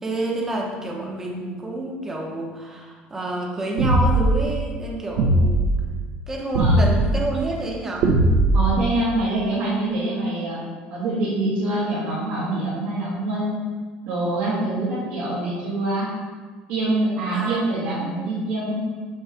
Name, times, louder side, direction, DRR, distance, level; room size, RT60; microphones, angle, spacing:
voice 1, 0.0-5.7 6.3-8.1 17.3-17.6, right 1 dB, 15° right, -1 dB, 0.8 m, -28 dB
sound 1, 3.8-4.4 5.2-5.6 6.5-7.1 8.0-8.7, right 1 dB, 65° right, 0.8 m, -18 dB
voice 2, 8.5-10.6 10.9-13.6 14.1-16.1 16.7-18.7, right 2 dB, 85° right, -9 dB, 2.0 m, -25 dB
8.7 x 3.1 x 5.1 m, 1.5 s
cardioid pair, 175°, 3 cm